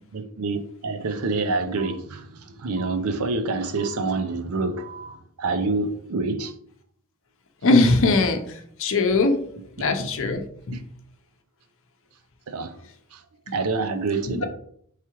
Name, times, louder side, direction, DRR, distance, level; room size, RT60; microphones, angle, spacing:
voice 1, 0.1-6.5 9.8-9.9 10.7-10.8 12.5-12.8 13.1-14.5, right 3 dB, 70° right, 0.6 m, -27 dB
voice 2, 7.6-9.4 9.8-10.4 10.7-10.8 14.3-14.5, left 3 dB, 60° left, 0.7 m, -20 dB
4.7 x 3.2 x 3.0 m
head